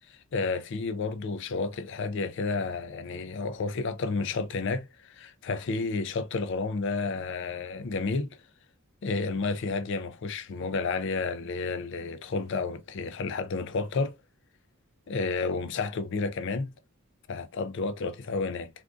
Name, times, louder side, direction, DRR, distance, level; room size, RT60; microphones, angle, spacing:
voice 1, 0.1-8.3 9.0-14.1 15.1-16.7 17.3-18.7, left 4 dB, 60° left, 0.4 m, -31 dB
3.5 x 2.5 x 2.4 m
head